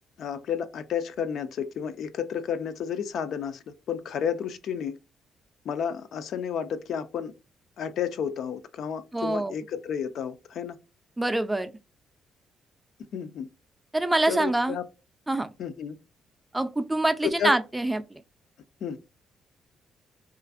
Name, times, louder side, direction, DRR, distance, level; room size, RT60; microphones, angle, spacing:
voice 1, 0.2-5.0 5.7-7.3 7.8-10.8 13.1-13.5 14.3-14.9 15.6-16.0 17.2-17.5 18.8-19.0, left 8 dB, 70° left, 0.3 m, -31 dB
voice 2, 9.1-9.5 11.2-11.7 13.9-14.8 15.3-15.5 16.5-18.0, right 2 dB, 10° right, 0.4 m, -25 dB
2.5 x 2.4 x 2.4 m
cardioid pair, 90°, 0 cm